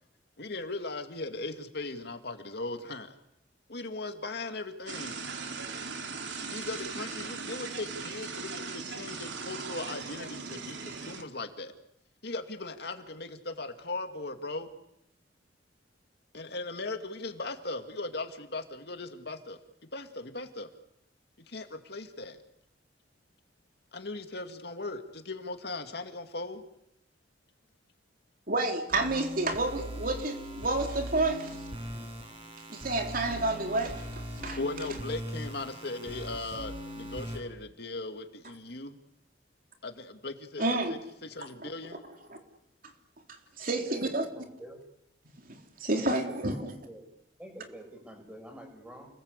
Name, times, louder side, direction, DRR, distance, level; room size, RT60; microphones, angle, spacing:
voice 1, 0.4-3.2 3.7-5.2 6.5-11.7 12.2-14.7 16.3-19.6 19.9-20.7 21.5-22.4 23.9-26.6 34.6-39.0 39.8-42.0, left 2 dB, 65° left, 6 dB, 2.4 m, -38 dB
sound 1, 4.9-11.2, right 4 dB, 85° right, 2.8 m, -39 dB
voice 2, 28.5-31.6 32.7-34.6 40.6-41.0 41.6-41.7 42.3-42.4 43.6-44.3 45.5-46.7, right 2 dB, 55° right, 4 dB, 3.7 m, -30 dB
sound 2, 28.9-37.4, equal, 30° right, 7.7 m, -40 dB
voice 3, 43.7-44.8 45.9-47.1 47.4-49.1, right 1 dB, 5° right, 4 dB, 6.5 m, -47 dB
29.5 x 21.0 x 8.4 m, 0.81 s
head